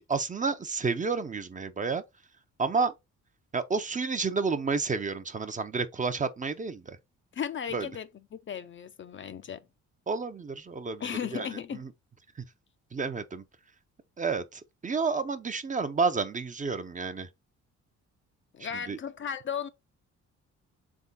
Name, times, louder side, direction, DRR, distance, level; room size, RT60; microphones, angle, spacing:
voice 1, 0.0-2.0 2.6-2.9 3.5-7.0 7.7-7.9 10.1-11.9 12.4-12.5 12.9-13.4 14.2-17.3 18.9-19.0, right 4 dB, 25° right, 0.6 m, -30 dB
voice 2, 7.3-9.6 11.0-11.8 18.5-19.7, left 8 dB, 40° left, 0.5 m, -36 dB
3.6 x 3.6 x 4.0 m
cardioid pair, 90°, 30 cm